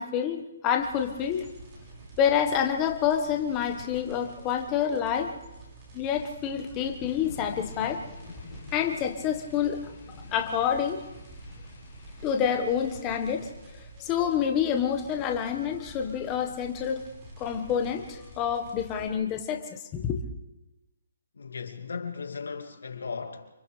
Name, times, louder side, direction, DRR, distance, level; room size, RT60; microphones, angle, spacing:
voice 1, 0.0-1.5 2.2-5.3 5.9-8.0 8.7-9.9 10.3-11.0 12.2-13.5 14.0-17.0 17.4-19.6 19.9-20.2, left 8 dB, 15° left, 1.4 m, -27 dB
sound 1, 0.8-19.1, right 2 dB, 15° right, 5.4 m, -47 dB
sound 2, 7.0-14.5, left 4 dB, 30° left, 7.1 m, -48 dB
voice 2, 21.4-23.5, left 5 dB, 85° left, 2.3 m, -36 dB
30.0 x 25.5 x 3.4 m
hypercardioid pair, 170°, 0 cm